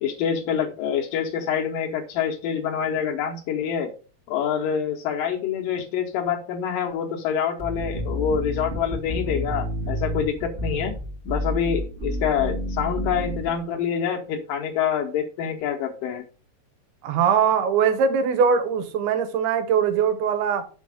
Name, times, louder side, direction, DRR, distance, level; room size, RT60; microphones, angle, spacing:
voice 1, 0.0-3.9 4.3-10.9 11.3-16.2, left 8 dB, 70° left, 2.3 m, -26 dB
sound 1, 7.6-13.6, equal, 50° right, 0.7 m, -30 dB
voice 2, 17.0-20.7, right 6 dB, 85° right, 3.0 m, -21 dB
6.2 x 5.7 x 4.9 m
omnidirectional pair, 4.4 m